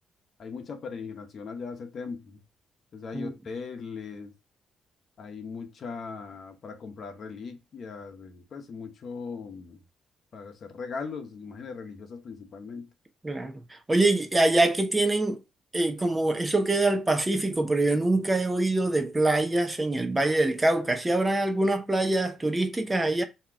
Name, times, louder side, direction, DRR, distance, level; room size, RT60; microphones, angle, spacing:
voice 1, 0.4-2.4 2.9-4.3 5.2-9.8 10.3-12.9, left 5 dB, 55° left, 0.9 m, -39 dB
voice 2, 13.2-15.4 15.7-23.2, right 2 dB, 15° right, 0.8 m, -24 dB
3.6 x 2.9 x 4.5 m
cardioid pair, 90°, 0 cm